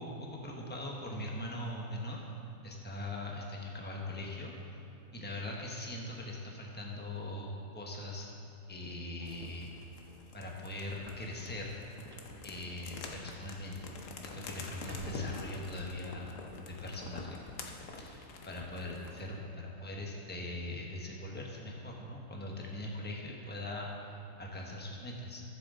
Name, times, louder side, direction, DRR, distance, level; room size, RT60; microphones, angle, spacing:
voice 1, 0.0-2.3 2.6-4.8 5.1-8.3 8.7-9.7 10.3-11.7 12.4-14.0 14.2-16.3 16.7-25.4, left 1 dB, 10° left, -1 dB, 1.0 m, -41 dB
sound 1, 8.8-16.3, equal, 20° right, 0.9 m, -55 dB
sound 2, 9.3-19.3, left 3 dB, 65° left, 1.2 m, -47 dB
13.5 x 7.4 x 3.8 m, 2.9 s
omnidirectional pair, 1.5 m